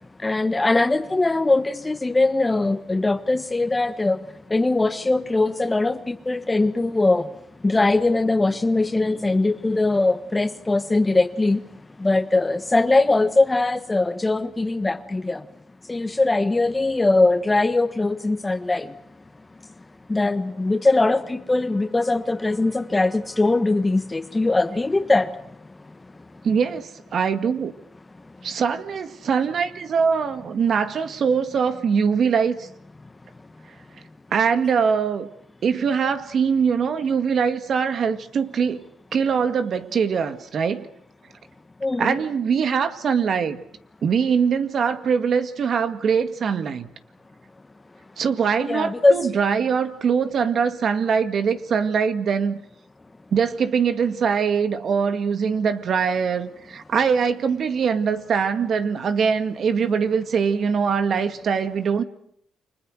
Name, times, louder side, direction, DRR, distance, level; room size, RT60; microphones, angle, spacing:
voice 1, 0.2-4.2 4.5-7.3 7.6-11.6 12.0-15.4 15.9-18.9 20.1-25.3 41.8-42.2 48.6-49.3, left 2 dB, 20° left, 1.4 m, -21 dB
voice 2, 26.4-27.7 28.4-32.7 34.3-35.3 35.6-38.8 39.1-40.9 42.0-43.6 44.0-46.9 48.2-52.6 53.3-62.0, right 6 dB, 55° right, 1.9 m, -22 dB
30.0 x 25.5 x 6.4 m
cardioid pair, 90°, 0 cm